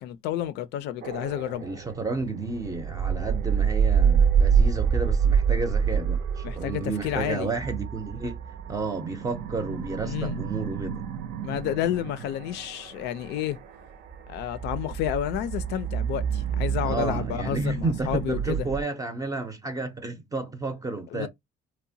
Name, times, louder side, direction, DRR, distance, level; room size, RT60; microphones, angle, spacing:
voice 1, 0.0-1.6 6.4-7.5 10.0-10.6 11.4-13.6 14.3-18.7 21.1-21.3, left 11 dB, 80° left, 0.4 m, -30 dB
sound 1, 1.0-18.8, right 7 dB, 65° right, 0.5 m, -27 dB
voice 2, 1.6-8.4 8.7-11.0 16.8-21.3, right 3 dB, 20° right, 0.5 m, -31 dB
2.9 x 2.1 x 2.6 m
cardioid pair, 110°, 17 cm